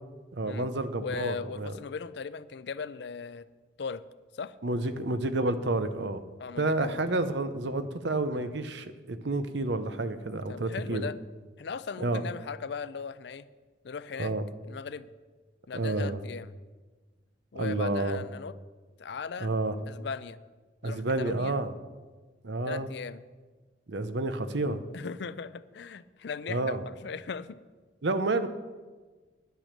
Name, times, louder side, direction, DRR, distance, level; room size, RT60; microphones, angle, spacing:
voice 1, 0.3-1.7 4.6-6.2 6.6-11.1 12.0-12.2 14.2-14.4 15.7-16.2 17.5-18.2 19.4-19.8 20.8-21.7 22.4-22.9 23.9-24.8 26.5-26.9 28.0-28.5, right 2 dB, 65° right, 11 dB, 0.8 m, -30 dB
voice 2, 1.0-3.5 3.8-4.0 4.3-4.5 6.4-7.2 8.3-8.5 10.5-11.2 11.6-13.5 13.8-14.3 14.6-15.1 15.7-16.5 17.5-18.5 19.0-19.5 19.9-20.4 20.8-21.6 22.7-23.2 24.9-27.6, left 5 dB, 60° left, 15 dB, 0.4 m, -38 dB
10.5 x 9.2 x 6.6 m, 1.4 s
head